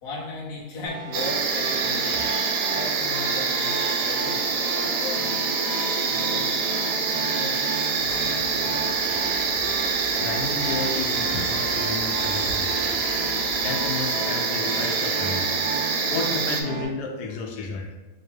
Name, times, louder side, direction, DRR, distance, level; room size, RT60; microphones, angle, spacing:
voice 1, 0.0-2.2 2.7-5.5 6.0-6.5 7.1-8.1 8.9-9.7, left 2 dB, 45° left, -4 dB, 1.0 m, -37 dB
sound 1, 0.9-16.9, right 3 dB, 55° right, 0.7 m, -35 dB
sound 2, 1.1-16.6, right 4 dB, 80° right, 1.1 m, -25 dB
sound 3, 8.0-14.3, left 1 dB, 20° left, 0.9 m, -41 dB
voice 2, 10.2-12.7 13.6-15.6 16.1-17.9, left 3 dB, 85° left, 1 dB, 1.1 m, -32 dB
5.3 x 2.1 x 3.2 m, 1.1 s
omnidirectional pair, 1.7 m